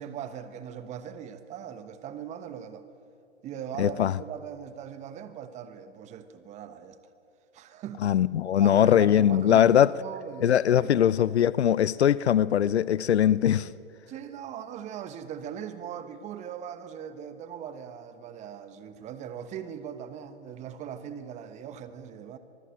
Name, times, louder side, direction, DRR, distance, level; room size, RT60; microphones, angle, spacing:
voice 1, 0.0-2.9 3.4-7.0 7.5-8.1 8.6-11.0 14.1-22.4, right 8 dB, 20° right, 1.3 m, -40 dB
voice 2, 3.8-4.1 8.0-9.9 10.4-13.7, left 10 dB, 65° left, 0.8 m, -21 dB
25.0 x 19.5 x 8.8 m
hypercardioid pair, 130°, 35 cm